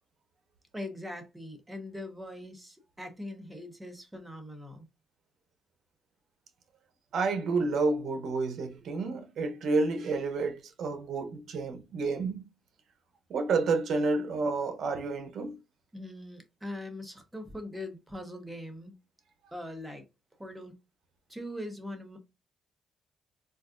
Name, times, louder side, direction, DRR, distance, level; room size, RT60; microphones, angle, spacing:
voice 1, 0.7-4.9 15.9-18.9 19.5-20.0 20.4-20.7 21.3-22.2, left 1 dB, 10° right, 0.9 m, -41 dB
voice 2, 7.1-12.4 13.3-15.6, right 3 dB, 65° right, 0.8 m, -30 dB
3.9 x 2.4 x 2.4 m
cardioid pair, 90°, 0 cm